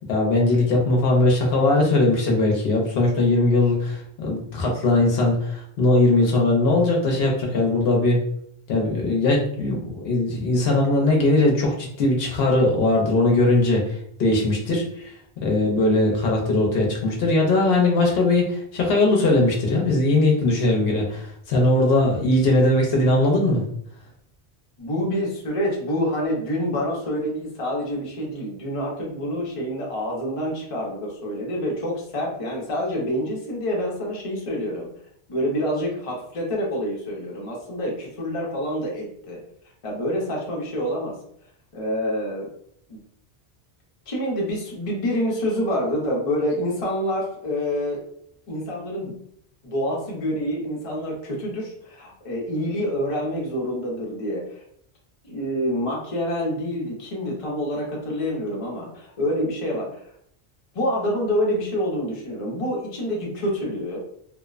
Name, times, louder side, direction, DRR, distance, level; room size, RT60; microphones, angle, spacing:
voice 1, 0.1-8.2 8.7-15.1 15.4-23.6, left 2 dB, 70° left, -1 dB, 0.8 m, -20 dB
voice 2, 24.8-34.9 35.3-39.4 39.8-41.2 41.7-42.5 42.9-43.0 44.1-48.0 48.5-49.2 49.6-54.6 55.2-60.0 60.7-64.0, equal, 40° left, -3 dB, 0.7 m, -27 dB
2.6 x 2.0 x 2.3 m, 0.67 s
omnidirectional pair, 1.1 m